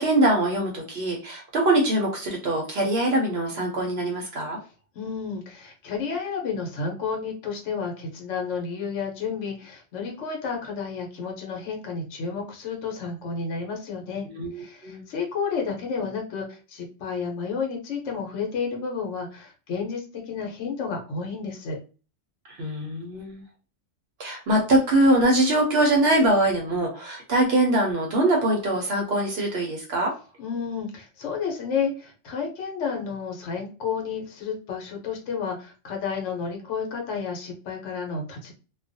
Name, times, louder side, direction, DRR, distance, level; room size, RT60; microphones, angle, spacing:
voice 1, 0.0-4.6 14.2-15.0 22.5-23.4 24.2-30.1, right 1 dB, 60° right, 0 dB, 0.8 m, -23 dB
voice 2, 4.9-14.3 14.5-21.8 30.4-38.5, left 5 dB, 70° left, 1 dB, 1.0 m, -31 dB
2.4 x 2.2 x 2.5 m, 0.35 s
omnidirectional pair, 1.3 m